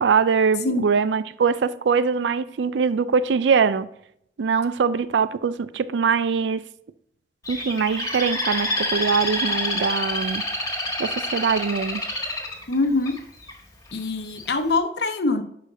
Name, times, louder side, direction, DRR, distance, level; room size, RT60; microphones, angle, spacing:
voice 1, 0.0-3.9 4.4-6.6 7.5-10.4 11.0-12.0, right 5 dB, 85° right, 0.4 m, -22 dB
Bird, 7.5-13.5 14.1-14.5, left 1 dB, 20° left, 1.4 m, -28 dB
voice 2, 12.7-13.2 13.9-15.4, left 3 dB, 65° left, 0.8 m, -23 dB
11.0 x 5.0 x 2.6 m
head